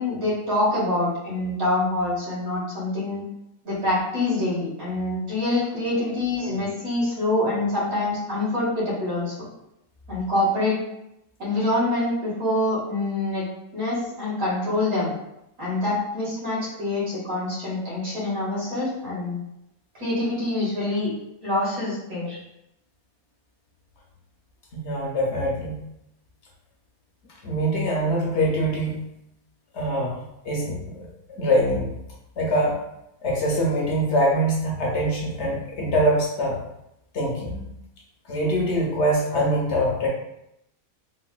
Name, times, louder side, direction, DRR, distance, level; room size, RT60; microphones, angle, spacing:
voice 1, 0.0-3.2 3.6-9.5 10.1-10.8 11.4-13.4 13.7-15.1 15.6-19.4 19.9-21.1 21.4-22.4, left 2 dB, 70° right, -8 dB, 1.9 m, -25 dB
voice 2, 24.7-25.8 27.4-29.0 29.7-31.1 31.4-31.9 32.4-32.8 33.2-36.6 37.1-37.6 38.3-40.1, equal, 65° left, -2 dB, 0.8 m, -23 dB
3.7 x 2.1 x 2.2 m, 0.82 s
omnidirectional pair, 1.5 m